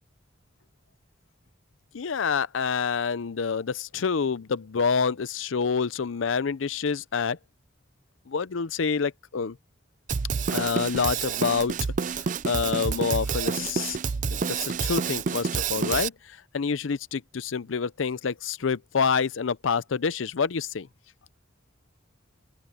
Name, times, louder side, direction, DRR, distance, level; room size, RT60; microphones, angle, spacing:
voice 1, 1.9-7.4 8.3-9.6 10.5-11.8 12.0-14.0 14.3-20.9, left 5 dB, 85° left, 0.6 m, -27 dB
Drum kit, 10.1-16.1, right 5 dB, 40° right, 0.4 m, -28 dB
open air
head